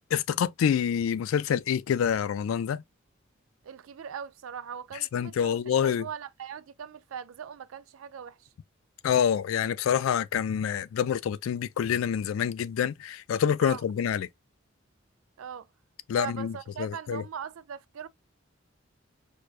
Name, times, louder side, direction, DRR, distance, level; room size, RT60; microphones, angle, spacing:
voice 1, 0.1-2.8 5.1-6.1 9.0-14.3 16.1-16.5 16.8-17.2, left 8 dB, 85° left, 0.3 m, -27 dB
voice 2, 3.6-8.4 13.6-13.8 15.4-15.7 16.1-18.1, right 8 dB, 90° right, 0.4 m, -40 dB
4.6 x 2.2 x 2.4 m
head